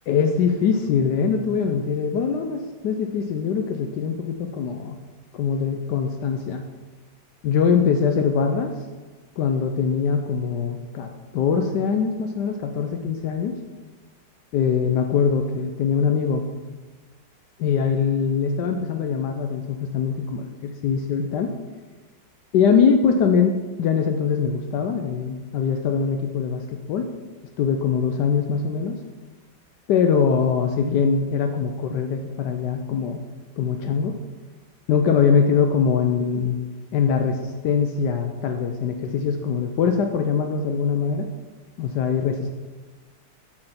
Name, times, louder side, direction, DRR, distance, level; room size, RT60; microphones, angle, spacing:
voice 1, 0.1-5.0 5.3-6.6 7.4-8.7 9.4-13.6 14.5-16.4 17.6-21.5 22.5-27.1 27.6-29.0 29.9-33.2 33.6-34.2 34.9-36.6 36.9-41.3 41.8-42.5, left 6 dB, 75° left, 5 dB, 1.2 m, -22 dB
6.7 x 6.4 x 5.6 m, 1.3 s
omnidirectional pair, 1.9 m